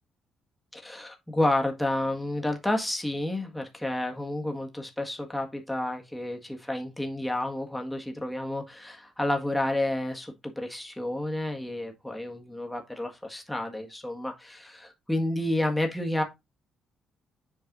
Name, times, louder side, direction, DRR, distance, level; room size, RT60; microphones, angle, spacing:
voice 1, 0.7-16.2, left 1 dB, 5° left, 1.7 m, -30 dB
7.6 x 4.6 x 3.9 m
cardioid pair, 90°, 0 cm